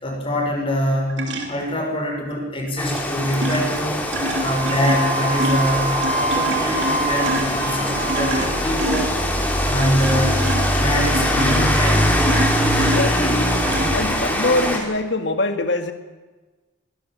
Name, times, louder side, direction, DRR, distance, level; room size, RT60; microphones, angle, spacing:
voice 1, 0.0-1.2 1.5-4.1 4.4-9.2 9.6-10.4 10.8-12.0, equal, 25° left, 1 dB, 5.7 m, -24 dB
sound 1, 1.1-1.8 2.8-3.0 3.3-14.6, right 1 dB, 60° right, 3.1 m, -28 dB
Rain, 2.8-14.8, equal, 10° left, 3.2 m, -22 dB
Wind instrument woodwind instrument, 4.4-8.6, right 3 dB, 35° right, 5.5 m, -26 dB
voice 2, 12.7-13.5 13.9-15.9, left 2 dB, 60° left, 8 dB, 2.0 m, -23 dB
22.0 x 18.5 x 7.4 m, 1.2 s
head